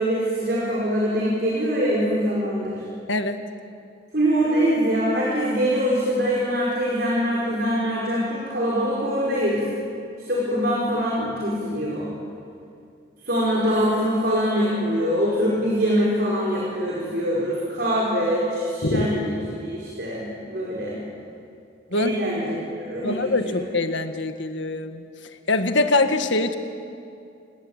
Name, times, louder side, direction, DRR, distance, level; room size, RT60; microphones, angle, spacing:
voice 1, 0.0-2.8 4.1-9.6 10.3-12.1 13.2-19.3 19.6-21.0 21.9-23.6, equal, 55° right, -5 dB, 5.6 m, -23 dB
voice 2, 23.0-25.0 25.5-26.5, left 2 dB, 85° left, 7 dB, 1.7 m, -23 dB
28.5 x 19.0 x 9.0 m, 2.5 s
head